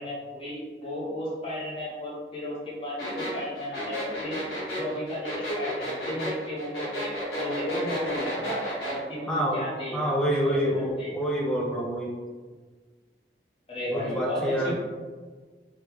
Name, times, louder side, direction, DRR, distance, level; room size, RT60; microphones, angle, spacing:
voice 1, 0.0-4.4 4.7-10.0 10.4-11.1 13.7-14.7, left 1 dB, 30° left, -7 dB, 0.9 m, -34 dB
sound 1, 3.0-9.0, equal, 80° left, 1.5 m, -33 dB
voice 2, 9.3-9.6 9.9-12.1 13.9-14.7, equal, 5° left, -3 dB, 0.4 m, -27 dB
3.1 x 2.2 x 3.4 m, 1.5 s
head